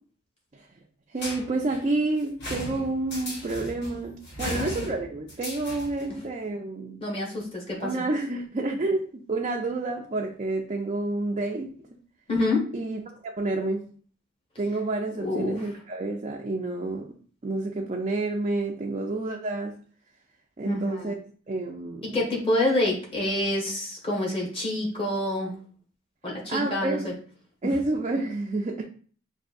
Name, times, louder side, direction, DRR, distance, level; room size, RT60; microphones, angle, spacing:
voice 1, 1.1-7.0 7.8-11.7 12.7-13.9 14.6-17.1 17.4-19.8 20.6-21.2 21.5-22.1 26.5-27.1 27.6-28.8, right 2 dB, 35° right, -1 dB, 0.5 m, -29 dB
sound 1, 1.2-6.1, equal, 60° left, 1.5 m, -37 dB
voice 2, 4.4-4.8 6.1-6.2 7.0-8.0 12.3-12.7 15.2-15.7 20.6-21.2 22.0-25.6 26.2-27.1 27.6-27.8, left 1 dB, 30° left, -2 dB, 1.3 m, -27 dB
6.2 x 2.7 x 2.5 m, 0.43 s
head